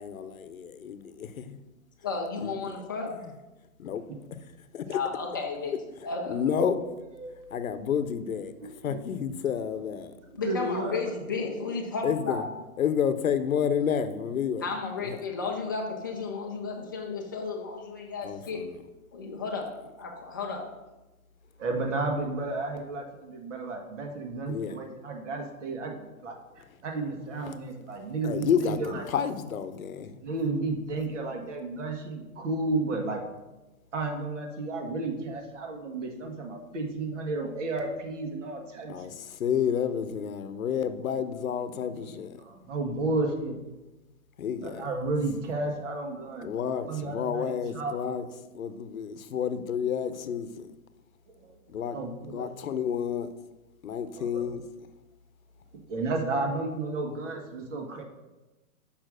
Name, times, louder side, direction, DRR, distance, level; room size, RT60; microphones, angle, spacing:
voice 1, 0.0-1.6 2.4-2.5 3.2-3.3 3.8-4.0 4.7-5.0 6.3-6.7 7.5-8.5 8.8-10.1 12.0-12.4 12.8-14.7 15.0-15.2 18.2-18.8 24.5-24.8 28.2-30.2 38.9-42.4 44.4-44.8 46.4-48.2 48.5-50.7 51.7-52.0 52.3-53.3 53.8-54.6, left 8 dB, 65° left, 11 dB, 0.9 m, -30 dB
voice 2, 2.0-3.1 4.9-5.7 6.0-6.4 10.3-12.4 14.6-18.6 19.1-19.7 20.0-20.7, left 4 dB, 15° left, -1 dB, 0.5 m, -33 dB
voice 3, 7.1-7.9 8.6-9.1 10.3-11.0 21.6-26.4 26.8-29.1 30.2-33.2 33.9-39.1 42.4-43.5 44.6-46.5 46.9-48.0 51.3-51.5 51.9-52.5 54.2-54.4 55.9-58.0, right 3 dB, 55° right, 2 dB, 1.8 m, -32 dB
6.6 x 5.8 x 6.4 m, 1.1 s
hypercardioid pair, 160°, 44 cm